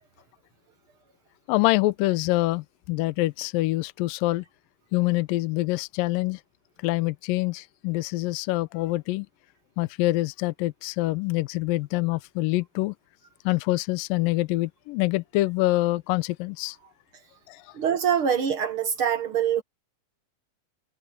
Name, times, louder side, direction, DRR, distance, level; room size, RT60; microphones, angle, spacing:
voice 1, 1.5-4.4 4.9-6.4 6.8-9.3 9.8-13.0 13.5-16.8 17.5-17.8, left 19 dB, 80° left, 2.3 m, -25 dB
voice 2, 17.7-19.6, right 8 dB, 60° right, 1.4 m, -24 dB
omnidirectional pair, 4.1 m